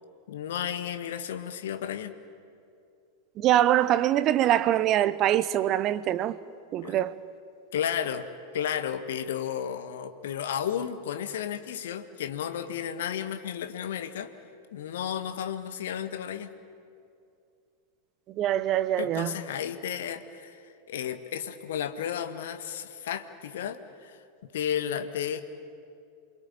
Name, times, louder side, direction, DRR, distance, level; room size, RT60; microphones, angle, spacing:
voice 1, 0.3-2.1 6.8-7.0 7.7-8.3 8.5-14.3 14.7-16.5 19.0-24.2 24.5-25.4, left 9 dB, 60° left, 1.7 m, -33 dB
voice 2, 3.4-6.4 6.7-7.1 18.4-19.3, right 12 dB, 35° right, 0.9 m, -24 dB
28.0 x 22.5 x 8.8 m
figure-of-eight pair, 90°, 0 cm